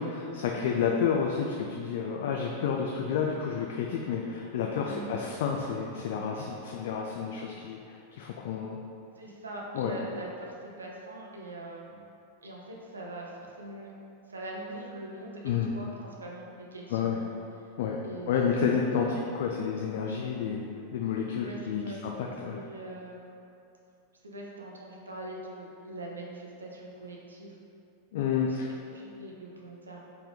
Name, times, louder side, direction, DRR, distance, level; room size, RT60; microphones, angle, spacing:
voice 1, 0.0-8.8 9.7-10.0 15.4-15.7 16.9-17.2 17.8-18.0 18.3-20.6 20.9-22.6 28.1-28.7, left 6 dB, 55° left, 0 dB, 0.3 m, -30 dB
voice 2, 4.8-5.2 9.2-12.1 12.4-13.9 14.3-17.3 18.0-18.4 19.0-19.2 21.4-22.0 22.5-23.3 24.2-27.6 28.3-28.6 28.9-30.0, right 2 dB, 75° right, -2 dB, 0.6 m, -42 dB
4.1 x 3.3 x 3.6 m, 2.6 s
figure-of-eight pair, 90°, 0 cm